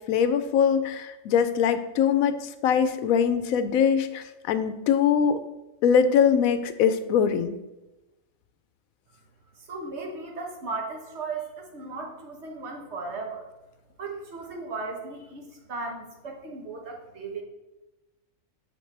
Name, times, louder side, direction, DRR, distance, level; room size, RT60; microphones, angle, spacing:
voice 1, 0.0-5.4 5.8-7.6, left 7 dB, 85° left, 11 dB, 1.0 m, -22 dB
voice 2, 9.7-13.5 14.0-17.4, right 3 dB, 55° right, 1 dB, 1.4 m, -36 dB
6.5 x 6.2 x 3.3 m, 1.0 s
omnidirectional pair, 1.4 m